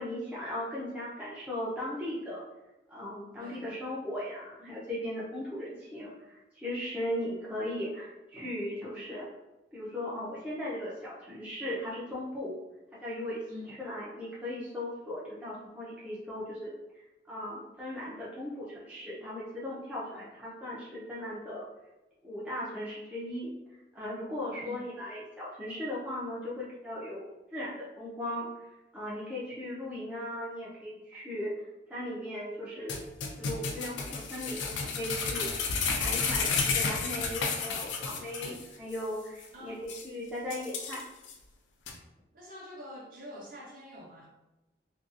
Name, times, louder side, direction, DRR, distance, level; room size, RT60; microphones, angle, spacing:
voice 1, 0.0-2.4 2.9-9.3 9.7-12.5 13.0-13.4 13.8-16.7 17.3-21.7 22.2-23.5 23.9-28.7 28.9-31.5 31.9-33.0 33.4-35.7 36.0-41.0, left 1 dB, 10° right, -8 dB, 0.4 m, -37 dB
sound 1, 32.9-38.6 38.9-39.0 39.4-39.5 39.9-40.0 40.5-41.3 41.9-42.0, left 5 dB, 80° left, 0.4 m, -32 dB
voice 2, 42.3-44.3, left 1 dB, 45° right, -4 dB, 0.7 m, -46 dB
2.6 x 2.3 x 2.4 m, 1.0 s
head